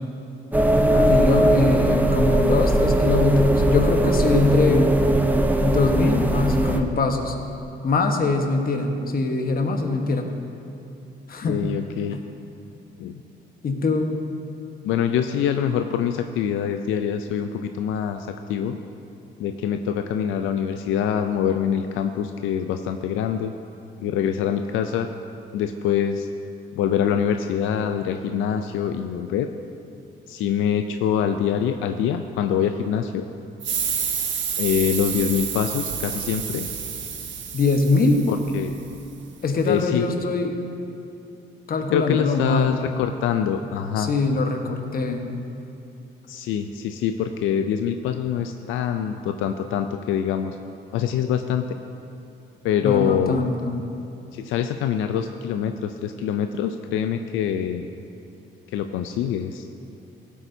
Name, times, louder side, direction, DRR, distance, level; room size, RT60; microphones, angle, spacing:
sound 1, 0.5-6.8, right 1 dB, 10° right, 0.6 m, -19 dB
voice 1, 1.1-4.9 5.6-7.3 7.8-10.3 11.3-11.6 13.6-14.2 37.5-38.2 39.4-40.6 41.7-42.8 44.0-45.2 52.8-53.8, left 3 dB, 50° left, 4 dB, 1.2 m, -22 dB
voice 2, 11.5-12.2 13.0-13.2 14.8-18.8 19.4-23.5 24.0-25.1 25.5-26.3 26.8-29.5 30.3-33.3 34.6-36.7 38.3-38.7 39.6-40.1 41.9-44.1 46.3-50.6 50.9-51.8 52.6-53.5 54.3-57.9 58.7-59.7, left 8 dB, 90° left, 7 dB, 0.4 m, -24 dB
sound 2, 33.6-38.9, right 7 dB, 70° right, 1.0 m, -29 dB
16.0 x 8.4 x 2.7 m, 2.7 s
cardioid pair, 90°, 20 cm